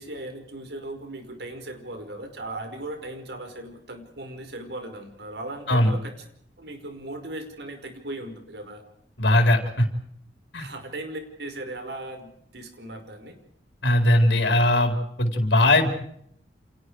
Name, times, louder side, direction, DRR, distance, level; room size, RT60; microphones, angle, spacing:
voice 1, 0.0-6.1 6.6-8.8 10.6-13.4, right 1 dB, 70° right, 6 dB, 5.1 m, -37 dB
voice 2, 9.2-9.9 10.5-10.7 13.8-15.9, left 1 dB, 90° left, 4 dB, 4.5 m, -20 dB
29.5 x 28.5 x 4.9 m, 0.68 s
head